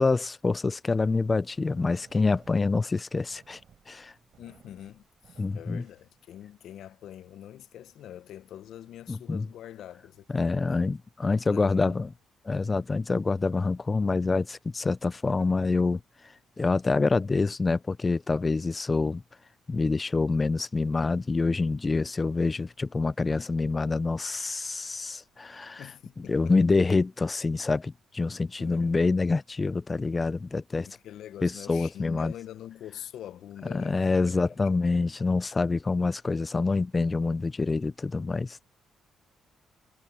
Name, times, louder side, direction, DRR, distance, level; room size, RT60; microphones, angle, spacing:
voice 1, 0.0-3.6 3.9-4.1 5.4-5.8 9.1-9.4 10.3-12.1 12.5-16.0 16.6-19.2 19.7-25.8 26.3-30.9 31.4-32.3 33.7-38.6, left 3 dB, 25° left, 0.5 m, -26 dB
sound 1, 1.5-6.6, right 8 dB, 60° right, 4.6 m, -60 dB
voice 2, 4.4-11.0 11.5-12.1 25.8-26.6 28.6-29.0 30.8-34.9, left 11 dB, 75° left, 0.8 m, -45 dB
cardioid pair, 90°, 0 cm